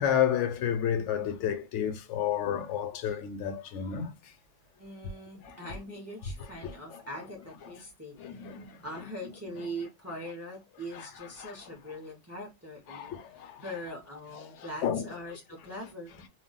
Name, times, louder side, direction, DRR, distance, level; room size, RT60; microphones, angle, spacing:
voice 1, 0.0-4.2 5.4-5.6 6.6-7.0 8.2-8.8 10.9-11.1 11.4-11.5 12.9-13.6 14.8-15.0, left 9 dB, 85° left, 0.9 m, -31 dB
voice 2, 4.8-8.4 8.8-13.2 13.6-16.3, equal, 20° right, 0.4 m, -42 dB
2.3 x 2.1 x 3.7 m
omnidirectional pair, 1.2 m